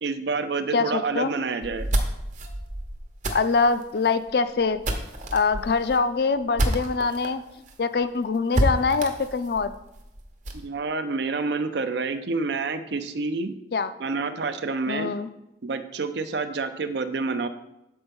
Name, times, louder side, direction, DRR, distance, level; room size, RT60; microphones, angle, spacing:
voice 1, 0.0-1.9 10.5-13.5 14.0-15.1 15.6-17.5, right 4 dB, 70° right, 10 dB, 0.5 m, -28 dB
voice 2, 0.7-1.3 3.3-4.8 5.3-7.4 7.8-9.7 13.7-13.9 14.9-15.3, left 4 dB, 55° left, 11 dB, 0.4 m, -24 dB
sound 1, 1.6-7.3 7.7-7.8 8.0-8.1 8.5-10.7, right 1 dB, 40° right, 0.8 m, -29 dB
6.9 x 4.3 x 5.3 m, 0.88 s
head